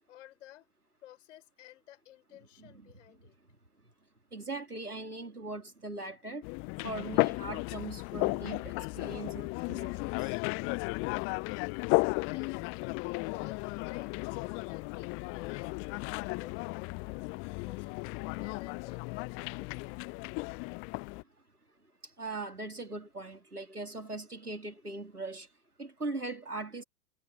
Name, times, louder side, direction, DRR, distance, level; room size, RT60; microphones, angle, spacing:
voice 1, 0.1-0.7 1.0-3.3 12.2-12.9 13.3-17.9 18.4-20.0, left 13 dB, 55° left, 6.3 m, -54 dB
voice 2, 2.6-2.9 4.3-6.4 6.8-10.4 22.0-25.5 25.8-26.8, right 2 dB, 90° right, 2.9 m, -40 dB
sound 1, 6.4-21.2, left 31 dB, 30° left, 0.8 m, -34 dB
figure-of-eight pair, 100°, 44 cm